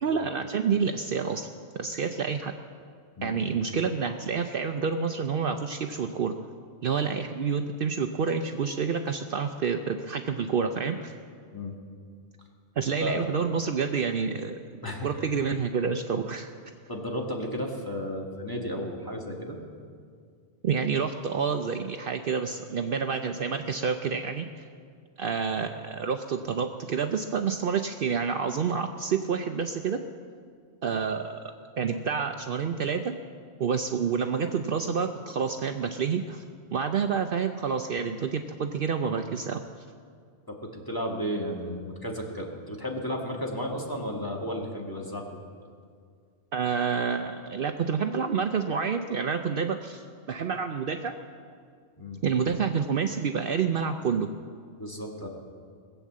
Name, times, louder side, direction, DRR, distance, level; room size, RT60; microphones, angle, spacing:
voice 1, 0.0-1.5 1.8-2.5 3.2-6.3 6.8-11.2 12.8-14.6 15.0-16.5 20.6-24.7 25.2-30.0 30.8-33.1 33.6-36.4 36.7-39.6 46.5-51.1 52.2-54.3, right 6 dB, 60° right, 6 dB, 0.8 m, -28 dB
voice 2, 16.9-19.6 40.5-45.4 52.0-52.2 54.8-55.3, equal, 20° left, 0 dB, 1.8 m, -33 dB
19.5 x 8.3 x 7.4 m, 2.1 s
omnidirectional pair, 1.1 m